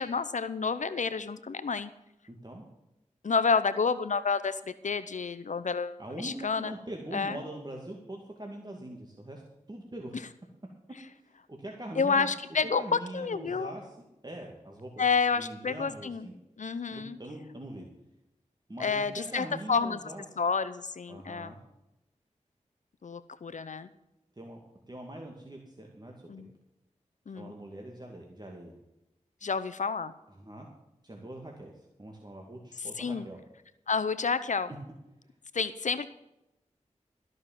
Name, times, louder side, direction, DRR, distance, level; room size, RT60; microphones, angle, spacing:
voice 1, 0.0-1.9 3.2-4.6 4.8-6.7 7.1-7.4 12.0-13.7 15.0-16.3 16.6-17.2 18.8-20.0 20.4-21.6 23.0-23.9 26.3-26.5 27.3-27.5 29.4-30.1 32.8-33.3 33.9-34.7 35.5-36.1, left 5 dB, 70° left, 13 dB, 0.7 m, -29 dB
voice 2, 6.0-9.4 9.7-10.1 11.2-12.3 12.6-15.0 15.4-16.3 16.9-17.9 18.7-20.2 21.1-21.6 24.4-24.6 24.9-26.5 27.3-28.7 30.3-30.7 31.0-33.4, right 1 dB, 30° right, 0 dB, 2.3 m, -43 dB
14.0 x 6.5 x 7.5 m, 0.90 s
cardioid pair, 45°, 13 cm